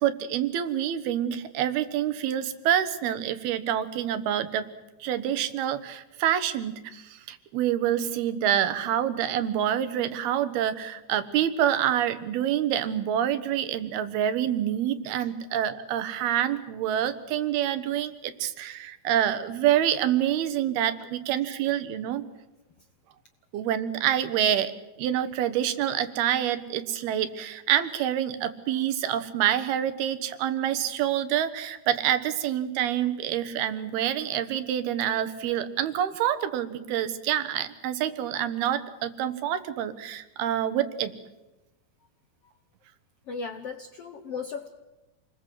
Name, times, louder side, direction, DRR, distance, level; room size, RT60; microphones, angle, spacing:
voice 1, 0.0-4.7 5.0-22.2 23.5-41.1, right 10 dB, 90° right, 12 dB, 3.3 m, -27 dB
voice 2, 43.3-44.7, left 5 dB, 70° left, 7 dB, 1.4 m, -36 dB
28.0 x 20.5 x 7.8 m, 1.0 s
omnidirectional pair, 4.3 m